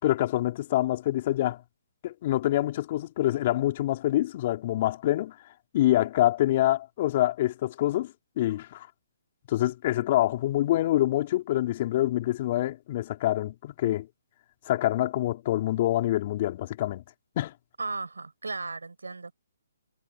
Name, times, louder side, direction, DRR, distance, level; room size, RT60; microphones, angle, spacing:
voice 1, 0.0-1.6 2.0-5.3 5.7-8.9 9.5-14.1 14.7-17.0 17.4-17.5, left 14 dB, 40° left, 4.0 m, -26 dB
voice 2, 17.8-19.3, right 3 dB, 90° right, 5.6 m, -35 dB
hypercardioid pair, 145°, 0 cm